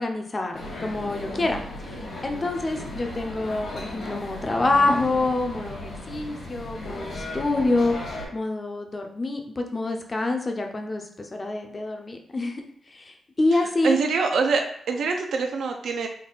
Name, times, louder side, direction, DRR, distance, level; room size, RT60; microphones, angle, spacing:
voice 1, 0.0-1.6 1.9-12.6 12.9-14.0, left 2 dB, 25° left, 4 dB, 0.5 m, -26 dB
sound 1, 0.5-8.3, left 2 dB, 55° left, 1.2 m, -36 dB
voice 2, 13.5-16.1, right 4 dB, 75° right, 3 dB, 0.4 m, -25 dB
3.6 x 2.3 x 3.9 m, 0.65 s
wide cardioid pair, 130°, 0 cm